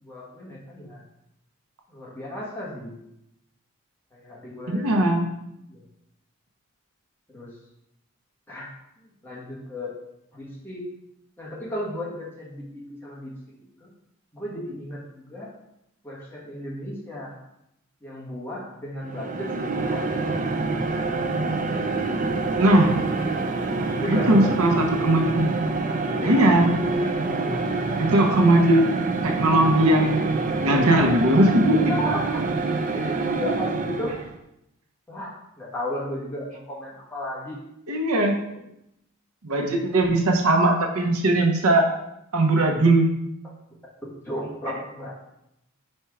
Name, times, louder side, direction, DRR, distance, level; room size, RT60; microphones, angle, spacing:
voice 1, 0.0-1.0 1.9-3.0 4.1-4.9 5.7-5.8 7.3-7.6 8.5-10.0 10.3-10.8 11.4-13.3 13.8-13.9 14.3-15.5 16.0-17.4 18.0-21.1 23.9-24.5 26.2-26.7 27.4-27.7 31.7-32.4 32.9-34.1 35.1-37.6 38.5-38.6 44.2-45.1, left 1 dB, 10° left, -5 dB, 1.4 m, -34 dB
voice 2, 4.7-5.3 22.5-23.0 24.1-25.5 26.2-26.7 28.0-28.9 29.2-30.3 30.6-31.8 37.9-38.4 39.4-41.9 42.3-43.1, right 1 dB, 80° right, 3 dB, 0.8 m, -19 dB
sound 1, 19.0-34.4, right 3 dB, 35° right, 0.4 m, -26 dB
4.5 x 4.4 x 4.8 m, 0.83 s
head